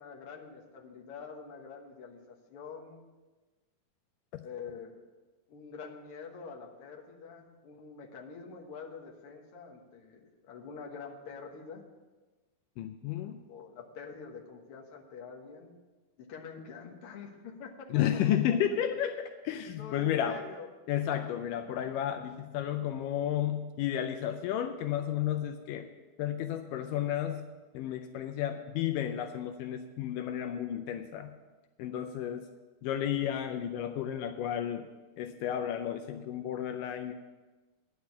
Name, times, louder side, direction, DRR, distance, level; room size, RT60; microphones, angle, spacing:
voice 1, 0.0-3.1 4.4-4.9 5.5-11.8 13.5-15.7 16.2-17.9 19.8-20.7, left 5 dB, 55° left, 0 dB, 1.8 m, -46 dB
voice 2, 12.8-13.4 17.9-20.5 20.9-25.9 26.2-31.3 31.8-32.5 32.8-34.9 35.2-37.1, left 10 dB, 80° left, 7 dB, 2.1 m, -32 dB
10.0 x 6.4 x 8.5 m, 1.2 s
omnidirectional pair, 3.9 m